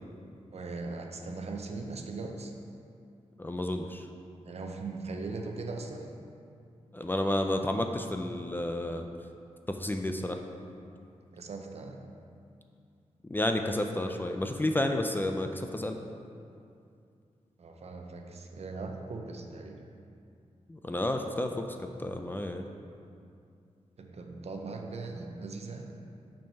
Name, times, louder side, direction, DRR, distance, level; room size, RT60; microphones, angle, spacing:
voice 1, 0.5-2.5 4.4-6.1 11.3-12.1 17.6-19.9 24.0-26.0, right 3 dB, 60° right, 3 dB, 0.6 m, -39 dB
voice 2, 3.4-4.1 6.9-9.1 9.7-10.4 13.3-16.0 20.7-21.6 22.0-22.6, left 1 dB, 15° left, 4 dB, 0.3 m, -31 dB
6.1 x 4.5 x 5.6 m, 2.4 s
wide cardioid pair, 140°, 12 cm